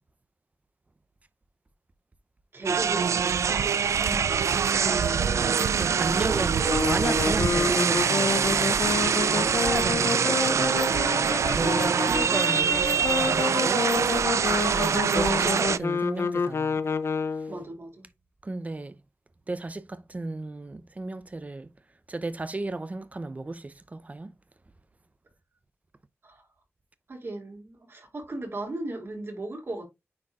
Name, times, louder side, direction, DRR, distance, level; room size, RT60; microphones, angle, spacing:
voice 1, 2.5-5.7 9.3-9.6 17.5-18.1 26.2-26.4 27.1-29.8, right 2 dB, 55° right, 2.8 m, -37 dB
sound 1, 2.7-15.8, right 6 dB, 80° right, 0.3 m, -24 dB
voice 2, 5.0-12.9 13.1-13.9 14.5-16.8 17.4-17.5 18.4-19.0 19.5-21.7 22.1-24.3, right 2 dB, 30° right, 0.7 m, -34 dB
sound 2, 6.6-17.6, left 5 dB, 60° left, 0.6 m, -29 dB
9.6 x 4.5 x 2.5 m
wide cardioid pair, 90°, 5 cm